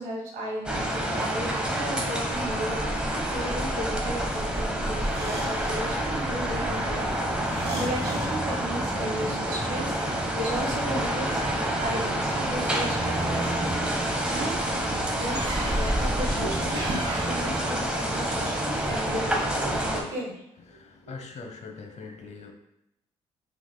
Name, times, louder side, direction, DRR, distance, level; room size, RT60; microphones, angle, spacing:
voice 1, 0.0-11.4 11.8-14.6 15.2-20.4 20.7-20.8, equal, 75° right, -2 dB, 1.4 m, -35 dB
sound 1, 0.7-20.0, right 1 dB, 5° right, 1.1 m, -28 dB
sound 2, 3.4-17.8, right 2 dB, 50° right, 1.5 m, -37 dB
voice 2, 20.7-22.5, left 4 dB, 55° left, 3 dB, 0.9 m, -42 dB
5.9 x 3.6 x 2.2 m, 0.83 s
hypercardioid pair, 50°, 14 cm